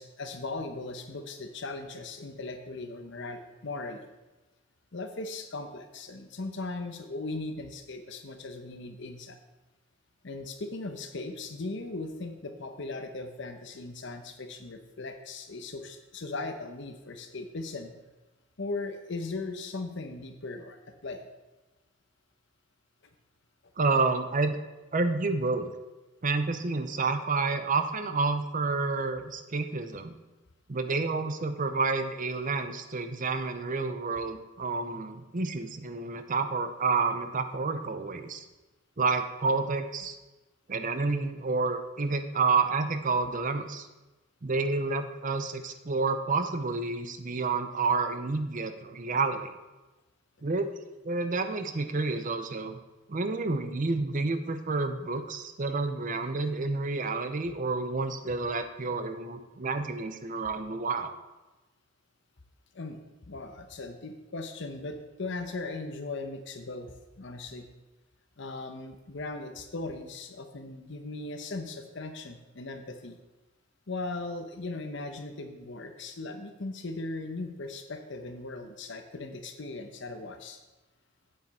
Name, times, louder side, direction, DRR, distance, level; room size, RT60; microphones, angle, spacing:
voice 1, 0.0-4.1 4.9-9.4 10.2-17.9 18.6-20.8 21.0-21.2 62.7-67.7 68.4-73.2 73.9-80.6, left 2 dB, 65° left, 7 dB, 0.9 m, -38 dB
voice 2, 23.8-24.6 24.9-25.7 26.2-30.1 30.7-38.4 39.0-40.2 40.7-43.9 44.4-49.5 50.4-50.7 51.0-52.8 53.1-61.1, right 3 dB, 40° right, 9 dB, 0.7 m, -29 dB
8.4 x 7.5 x 4.3 m, 1.1 s
head